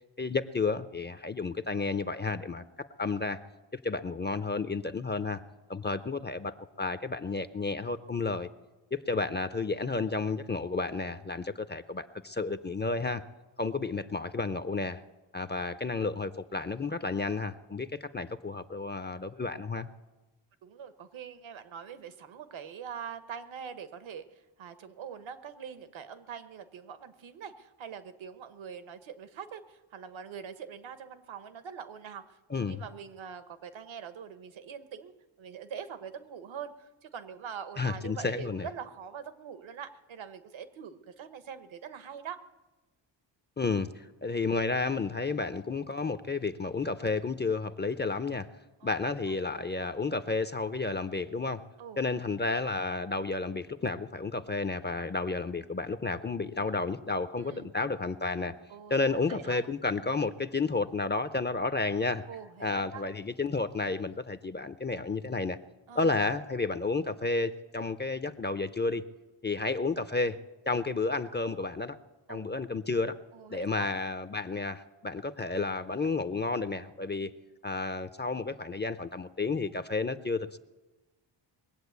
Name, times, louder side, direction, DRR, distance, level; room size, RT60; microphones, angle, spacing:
voice 1, 0.2-3.4 3.7-5.4 5.7-8.5 8.9-13.2 13.6-15.0 15.3-19.9 32.5-32.8 37.8-38.7 43.6-48.5 48.8-51.6 52.0-58.6 58.9-62.2 62.6-65.6 66.0-69.0 69.4-70.4 70.7-72.0 72.3-73.2 73.5-77.3 77.6-80.6, left 3 dB, 20° left, 11 dB, 0.6 m, -31 dB
voice 2, 20.6-35.1 35.4-42.4 48.8-49.0 49.3-49.4 51.8-52.0 57.4-57.7 58.7-59.7 62.3-63.0 65.9-66.2 72.3-72.5 73.3-73.9, right 7 dB, 70° right, 10 dB, 1.3 m, -44 dB
21.5 x 7.8 x 8.2 m, 1.1 s
cardioid pair, 70°, 49 cm